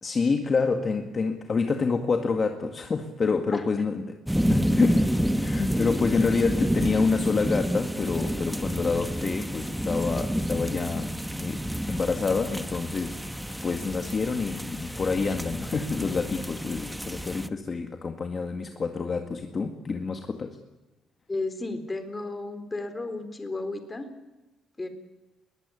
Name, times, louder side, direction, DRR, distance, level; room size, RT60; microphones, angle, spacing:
voice 1, 0.0-4.2 4.5-5.1 5.3-11.1 11.4-20.6, left 4 dB, 35° left, 2.0 m, -27 dB
sound 1, 4.3-17.5, equal, 5° right, 1.1 m, -29 dB
voice 2, 21.3-24.1 24.8-24.9, left 2 dB, 15° left, 3.9 m, -33 dB
21.5 x 20.0 x 9.9 m
cardioid pair, 125°, 0 cm